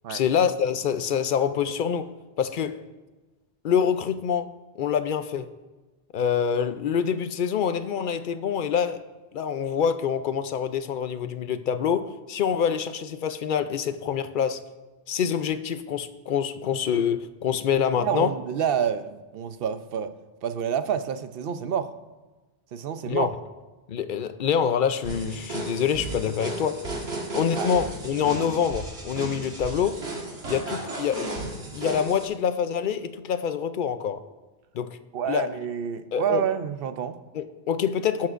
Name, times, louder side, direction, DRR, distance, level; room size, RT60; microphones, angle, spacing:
voice 1, 0.1-2.1 2.4-2.8 3.6-4.5 4.8-5.5 6.1-9.0 9.3-14.6 15.1-18.3 23.1-23.3 23.9-26.8 27.3-30.0 30.5-31.4 31.7-34.2 34.7-35.0 35.3-35.5 36.1-36.4 37.3-38.3, left 7 dB, 60° left, 0.7 m, -26 dB
voice 2, 18.0-20.1 20.4-21.9 22.7-23.3 27.6-27.7 35.1-37.2, right 8 dB, 65° right, 0.8 m, -28 dB
sound 1, 25.0-32.3, right 2 dB, 90° right, 1.9 m, -34 dB
17.0 x 7.5 x 2.5 m
omnidirectional pair, 1.1 m